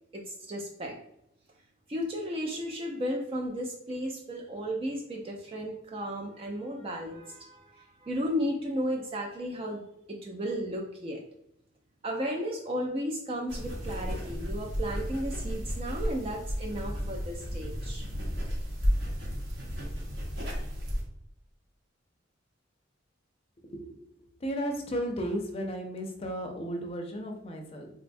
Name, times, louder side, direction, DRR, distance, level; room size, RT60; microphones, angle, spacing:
voice 1, 0.1-1.0 1.9-9.8 10.1-11.2 12.0-18.1, equal, 30° right, 0 dB, 0.4 m, -34 dB
sound 1, 13.5-21.0, equal, 65° right, 0.9 m, -33 dB
voice 2, 23.6-24.0 24.4-27.9, equal, 30° left, 2 dB, 0.5 m, -34 dB
3.9 x 2.1 x 2.6 m, 0.77 s
head